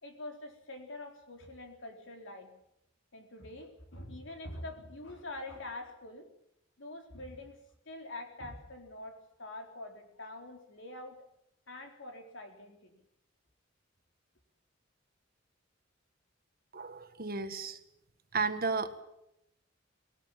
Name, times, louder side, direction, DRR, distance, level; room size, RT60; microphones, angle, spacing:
voice 1, 0.0-2.5 3.1-6.3 6.8-7.6 7.9-11.2 11.7-12.9, left 2 dB, 65° left, 4 dB, 4.0 m, -45 dB
voice 2, 16.7-17.8 18.3-19.0, right 4 dB, 50° right, 10 dB, 1.6 m, -33 dB
19.5 x 19.0 x 7.6 m, 0.79 s
head